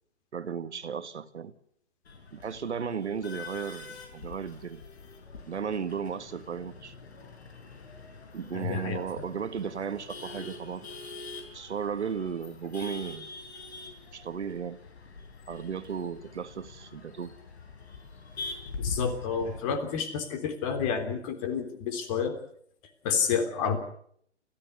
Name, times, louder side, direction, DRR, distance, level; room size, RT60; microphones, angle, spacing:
voice 1, 0.3-1.5 2.3-4.8 5.5-6.9 8.3-10.9 11.5-13.3 14.1-14.8 15.5-17.3, right 6 dB, 75° right, 10 dB, 1.8 m, -35 dB
Male speech man speaking / Laughter / Chatter, 2.1-19.6, left 4 dB, 65° left, 6.0 m, -44 dB
voice 2, 8.5-9.3 18.8-22.4 23.0-23.8, left 6 dB, 30° left, 9 dB, 3.4 m, -30 dB
29.0 x 14.5 x 8.2 m, 0.67 s
hypercardioid pair, 145°, 35 cm